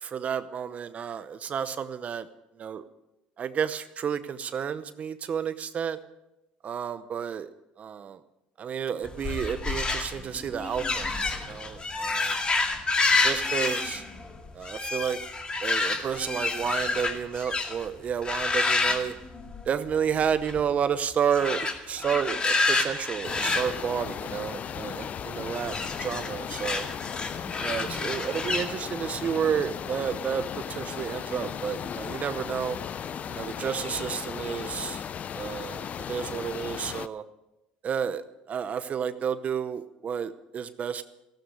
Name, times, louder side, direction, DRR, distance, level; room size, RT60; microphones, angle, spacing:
voice 1, 0.0-2.3 2.6-2.8 3.4-6.0 6.6-7.5 7.8-8.2 8.6-11.1 11.5-12.4 13.2-14.0 14.5-15.2 15.6-19.1 19.6-21.6 21.9-26.9 27.6-32.8 33.3-35.0 35.3-37.2 37.8-41.0, right 7 dB, 45° right, 12 dB, 0.8 m, -31 dB
sound 1, 9.0-17.9 18.2-19.9 20.2-20.6 21.2-24.6 25.5-28.6, left 3 dB, 30° left, 2.2 m, -29 dB
sound 2, 23.2-37.1, left 8 dB, 45° left, 0.5 m, -36 dB
14.5 x 12.5 x 6.6 m, 0.93 s
supercardioid pair, 90°, 3 cm